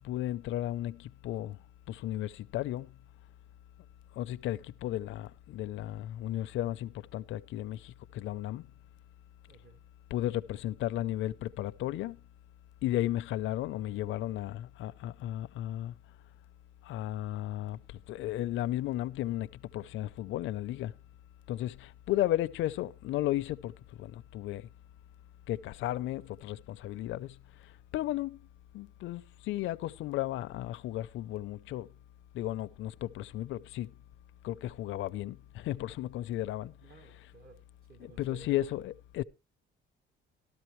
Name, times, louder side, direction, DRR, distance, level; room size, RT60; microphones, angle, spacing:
voice 1, 0.0-1.6 1.9-2.9 4.2-8.7 10.1-12.2 12.8-15.9 16.8-17.8 18.1-19.5 19.7-20.9 21.5-23.7 24.0-24.6 25.5-27.4 27.9-28.4 28.7-31.9 32.3-33.9 34.4-36.7 38.0-39.2, left 14 dB, 75° left, 0.6 m, -34 dB
voice 2, 9.5-9.8 27.9-28.0 36.8-37.6 37.9-38.7, right 5 dB, 45° right, 1.5 m, -54 dB
13.0 x 13.0 x 3.1 m
cardioid pair, 150°, 20 cm